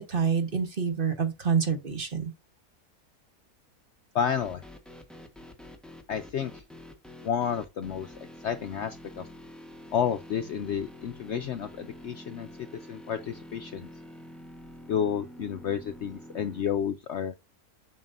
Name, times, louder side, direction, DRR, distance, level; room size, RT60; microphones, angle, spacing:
voice 1, 0.0-2.2, right 6 dB, 40° right, 1.3 m, -27 dB
voice 2, 4.1-4.6 6.1-6.6 7.2-8.1 8.4-9.2 9.9-12.5 12.9-13.9 14.9-17.3, left 8 dB, 65° left, 0.7 m, -30 dB
sound 1, 4.4-16.6, left 1 dB, ahead, 0.9 m, -47 dB
7.3 x 6.6 x 2.5 m
omnidirectional pair, 1.6 m